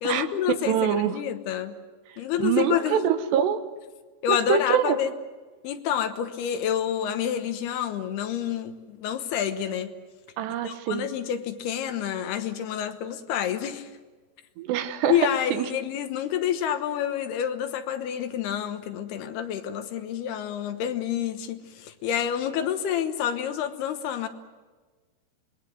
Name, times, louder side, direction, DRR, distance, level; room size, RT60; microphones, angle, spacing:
voice 1, 0.0-1.7 2.2-3.1 4.2-5.1 5.6-9.9 10.6-13.9 15.1-24.3, left 9 dB, 75° left, 8 dB, 3.0 m, -28 dB
voice 2, 0.7-1.1 2.4-3.6 4.3-5.0 10.4-11.1 14.6-15.2 15.5-15.7, right 9 dB, 80° right, 10 dB, 3.3 m, -24 dB
26.5 x 21.5 x 7.9 m, 1.3 s
omnidirectional pair, 4.9 m